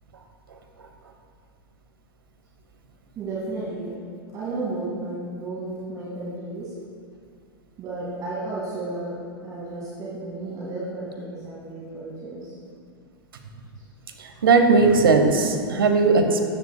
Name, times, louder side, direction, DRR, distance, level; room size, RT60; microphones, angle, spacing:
voice 1, 3.2-3.9 4.3-6.7 7.8-9.1 9.4-12.5, right 2 dB, 30° right, -7 dB, 2.2 m, -33 dB
voice 2, 14.4-16.5, right 4 dB, 65° right, 5 dB, 1.0 m, -18 dB
13.0 x 9.4 x 2.3 m, 2.2 s
figure-of-eight pair, 95°, 13 cm